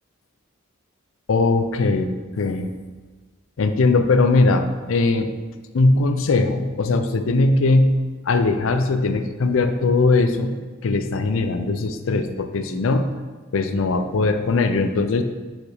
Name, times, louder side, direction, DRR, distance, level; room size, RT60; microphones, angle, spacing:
voice 1, 1.3-2.7 3.6-5.3 5.7-13.1 13.5-15.2, left 3 dB, 80° left, 8 dB, 0.5 m, -20 dB
5.0 x 4.1 x 4.7 m, 1.4 s
head